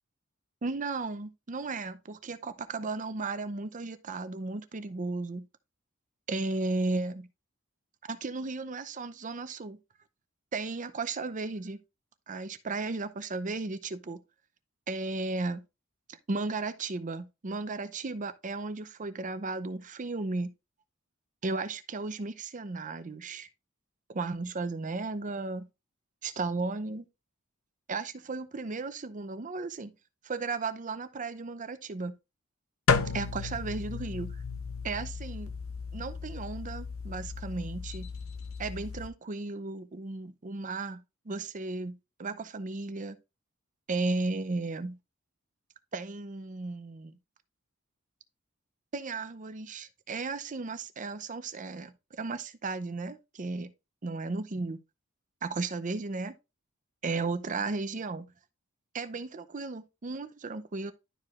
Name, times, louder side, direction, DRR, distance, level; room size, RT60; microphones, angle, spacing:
voice 1, 0.6-5.5 6.3-7.3 8.1-9.8 10.5-11.8 12.3-14.2 14.9-15.6 16.3-20.5 21.4-23.5 24.1-25.7 26.2-27.1 27.9-29.9 30.2-32.1 33.1-34.4 34.8-35.5 35.9-38.1 38.6-43.2 43.9-45.0 45.9-47.2 48.9-53.7 54.0-54.8 55.4-56.4 57.0-58.3 58.9-60.9, right 3 dB, 40° right, 0.6 m, -35 dB
sound 1, 32.9-39.1, left 5 dB, 80° left, 0.6 m, -33 dB
11.5 x 4.7 x 2.4 m
head